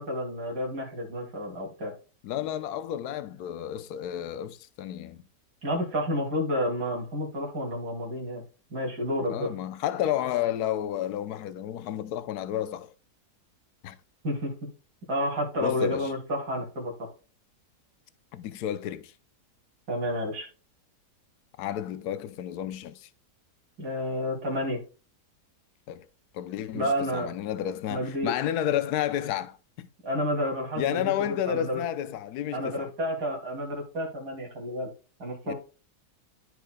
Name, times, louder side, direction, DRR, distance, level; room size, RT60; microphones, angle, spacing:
voice 1, 0.0-1.9 5.6-8.4 8.7-9.5 14.2-14.5 15.1-16.9 19.9-20.5 23.8-24.8 26.7-27.4 27.9-28.3 30.0-31.8 32.5-34.9 35.2-35.5, equal, 75° right, 3.2 m, -30 dB
voice 2, 2.2-5.2 9.3-12.9 13.8-14.0 15.6-16.1 18.3-19.1 21.6-23.1 25.9-26.1 26.3-29.9 30.8-32.9 35.4-35.5, left 11 dB, 75° left, 1.2 m, -31 dB
14.0 x 4.7 x 2.2 m
omnidirectional pair, 1.7 m